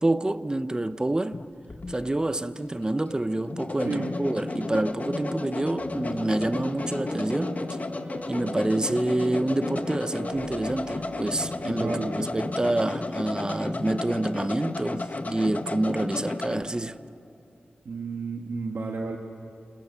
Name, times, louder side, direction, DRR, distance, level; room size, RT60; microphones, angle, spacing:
voice 1, 0.0-1.4 1.9-7.6 8.3-17.0, right 1 dB, 25° right, 0.9 m, -27 dB
sound 1, 1.3-16.7, left 2 dB, 50° left, 2.0 m, -33 dB
sound 2, 5.7-12.7, right 2 dB, 50° right, 3.2 m, -44 dB
voice 2, 11.6-12.2 17.9-19.2, right 4 dB, 80° right, 1.8 m, -32 dB
29.0 x 29.0 x 7.0 m
cardioid pair, 60°, 3 cm